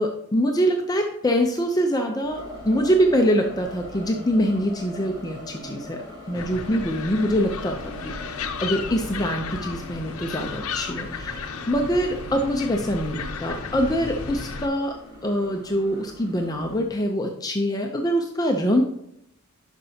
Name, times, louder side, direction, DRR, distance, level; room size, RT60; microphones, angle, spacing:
voice 1, 0.0-6.0 6.3-15.0 15.2-18.8, equal, 15° left, 2 dB, 0.5 m, -24 dB
sound 1, 2.2-16.8, left 1 dB, 20° right, 2.7 m, -42 dB
sound 2, 6.3-14.7, left 5 dB, 80° left, 0.7 m, -34 dB
11.0 x 5.2 x 2.8 m, 0.78 s
head